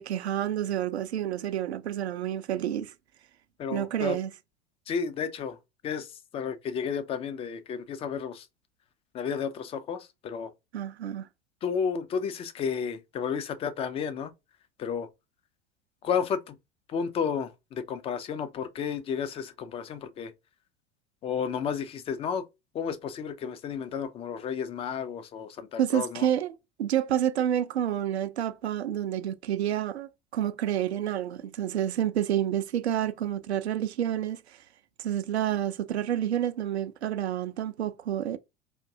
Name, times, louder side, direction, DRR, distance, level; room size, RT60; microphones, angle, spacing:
voice 1, 0.0-2.9 3.7-4.3 10.7-11.3 25.8-34.6 35.0-38.4, right 10 dB, 75° right, 0.5 m, -29 dB
voice 2, 3.6-4.2 4.9-5.6 5.8-6.1 6.3-8.5 9.1-10.5 11.6-14.3 14.8-15.1 16.0-16.6 16.9-20.3 21.2-22.4 22.7-26.3, left 7 dB, 20° left, 0.3 m, -32 dB
3.5 x 2.5 x 2.6 m
figure-of-eight pair, 80°, 33 cm